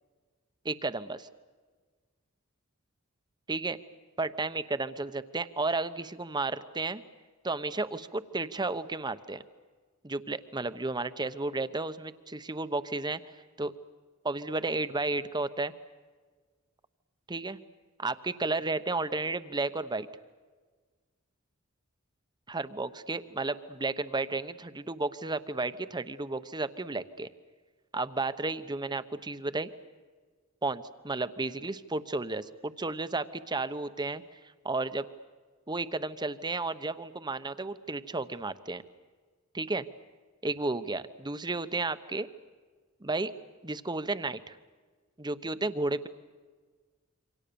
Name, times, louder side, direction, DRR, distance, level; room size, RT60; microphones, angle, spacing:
voice 1, 0.6-1.3 3.5-3.8 4.2-7.0 7.4-9.4 10.0-13.2 13.6-13.7 14.2-15.7 17.3-17.6 18.0-20.1 22.5-27.3 27.9-29.7 30.6-34.2 34.6-35.1 35.7-38.8 39.5-39.9 40.4-42.3 43.0-43.3 43.6-44.5 45.2-46.1, right 3 dB, 20° right, 12 dB, 1.0 m, -32 dB
28.0 x 25.0 x 7.0 m, 1.5 s
head